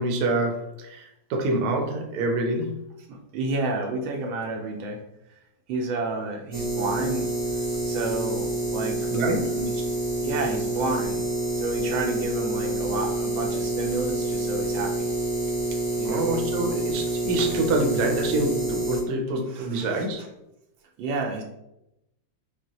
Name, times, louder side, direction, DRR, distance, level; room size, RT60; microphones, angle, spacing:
voice 1, 0.0-2.7 9.1-9.6 16.0-20.2, right 2 dB, 65° right, 2 dB, 1.1 m, -26 dB
voice 2, 3.1-5.0 5.7-7.3 7.8-9.0 9.6-9.8 10.2-11.3 11.5-15.1 16.0-16.3 19.5-20.0 21.0-21.4, right 3 dB, 80° right, 2 dB, 1.4 m, -30 dB
sound 1, 6.5-19.0, right 2 dB, 25° right, 0.7 m, -27 dB
6.4 x 2.2 x 2.9 m, 0.88 s
omnidirectional pair, 2.1 m